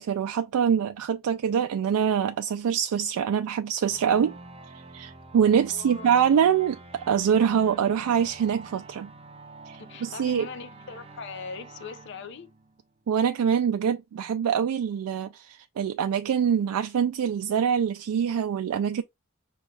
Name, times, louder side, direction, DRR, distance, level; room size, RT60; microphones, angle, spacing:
voice 1, 0.0-4.3 4.9-6.8 7.1-9.1 9.7-10.5 13.1-19.0, right 8 dB, 90° right, 0.3 m, -24 dB
sound 1, 3.9-13.2, right 3 dB, 25° right, 0.5 m, -46 dB
voice 2, 5.7-6.2 9.8-12.5, left 5 dB, 55° left, 0.5 m, -40 dB
5.2 x 2.3 x 3.2 m
head